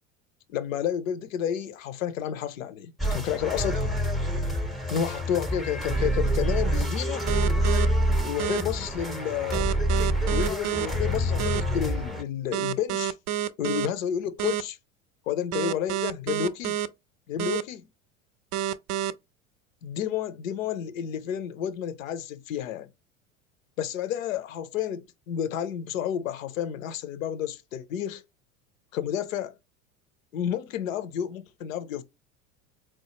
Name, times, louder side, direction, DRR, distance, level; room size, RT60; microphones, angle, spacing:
voice 1, 0.5-3.9 4.9-7.3 8.2-9.7 10.3-13.1 13.6-14.8 15.3-16.8 17.3-17.9 19.8-22.9 23.8-28.2 28.9-29.5 30.3-32.0, left 9 dB, 75° left, 0.6 m, -30 dB
sound 1, 3.0-12.2, equal, ahead, 0.6 m, -27 dB
sound 2, 7.3-7.9 8.4-8.6 9.5-10.9 11.4-11.6 12.5-13.9 14.4-14.6 15.5-16.9 17.4-17.6 18.5-19.1, right 11 dB, 50° right, 0.5 m, -28 dB
4.5 x 2.1 x 2.9 m
hypercardioid pair, 80°, 40 cm